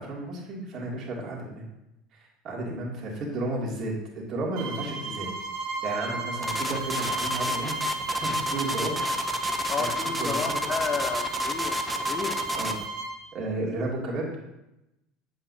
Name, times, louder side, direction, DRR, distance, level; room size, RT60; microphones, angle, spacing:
voice 1, 0.0-1.6 2.1-5.3 5.8-7.7 8.2-8.9 9.7-9.9 10.2-10.6 12.5-12.7 13.3-14.2, right 2 dB, 50° right, -2 dB, 2.6 m, -32 dB
sound 1, 4.5-13.2, right 3 dB, 65° right, 2.5 m, -35 dB
sound 2, 6.4-12.8, left 1 dB, 15° right, 0.7 m, -30 dB
voice 2, 9.7-12.4, left 6 dB, 35° left, 8 dB, 0.8 m, -32 dB
8.2 x 7.7 x 2.8 m, 0.91 s
supercardioid pair, 90°, 0 cm